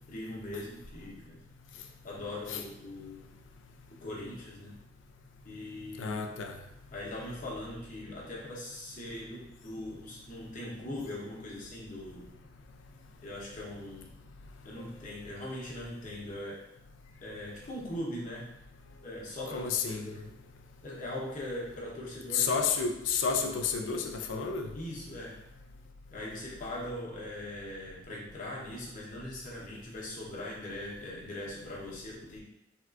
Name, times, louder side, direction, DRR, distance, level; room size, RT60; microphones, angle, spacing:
voice 1, 0.1-1.4 2.0-3.2 4.0-4.8 5.4-6.3 6.9-12.3 13.2-14.1 14.6-16.6 17.2-18.5 19.0-20.3 20.8-22.6 23.8-24.1 24.7-25.4 26.1-32.4, left 1 dB, 45° left, -5 dB, 0.9 m, -41 dB
voice 2, 6.0-6.5 19.5-20.0 22.3-24.7, left 5 dB, 75° left, 4 dB, 0.4 m, -30 dB
3.5 x 2.4 x 2.4 m, 0.85 s
head